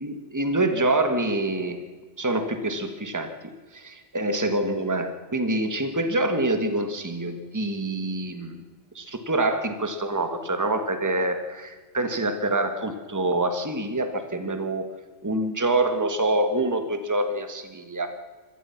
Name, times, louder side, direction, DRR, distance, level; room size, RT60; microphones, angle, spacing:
voice 1, 0.0-1.8 2.2-3.3 3.7-8.6 8.9-14.9 15.2-18.1, right 2 dB, 15° right, 8 dB, 1.6 m, -26 dB
25.0 x 18.5 x 5.9 m, 1.4 s
omnidirectional pair, 1.2 m